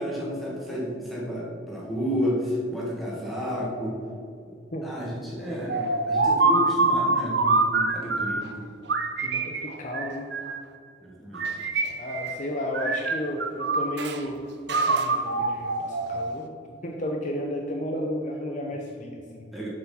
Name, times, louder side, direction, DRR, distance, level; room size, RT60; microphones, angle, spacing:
voice 1, 0.0-4.0 4.8-8.5 11.0-11.6 19.5-19.7, equal, ahead, -5 dB, 1.7 m, -31 dB
sound 1, 5.7-8.5 8.9-10.7 11.3-12.5 12.7-14.2 14.7-16.5, right 3 dB, 55° right, 0.6 m, -25 dB
voice 2, 9.2-10.3 12.0-16.5 16.8-19.5, left 1 dB, 35° left, 1 dB, 0.6 m, -33 dB
7.2 x 4.7 x 5.5 m, 2.4 s
head